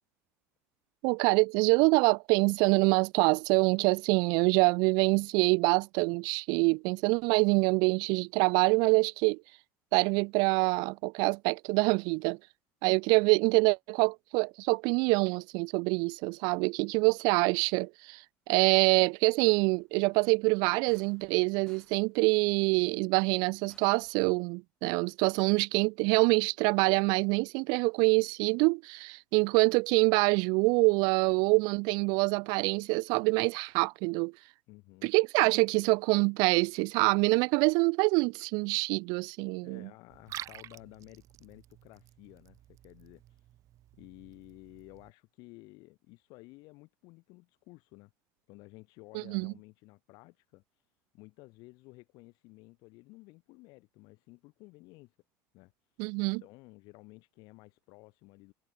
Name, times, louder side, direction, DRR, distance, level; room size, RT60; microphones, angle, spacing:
voice 1, 1.0-9.4 9.9-12.4 12.8-18.2 18.5-34.3 35.0-39.9 49.1-49.5 56.0-56.4, right 30 dB, 70° right, 0.6 m, -26 dB
sound 1, 19.4-19.8 20.9-21.4 21.7-22.1 23.7-24.1, left 2 dB, 10° left, 5.1 m, -62 dB
voice 2, 34.7-35.1 39.6-43.6 43.9-48.1 48.5-55.2 55.5-58.5, left 24 dB, 65° left, 2.9 m, -54 dB
Liquid, 40.1-45.1, right 13 dB, 50° right, 5.5 m, -49 dB
cardioid pair, 135°, 7 cm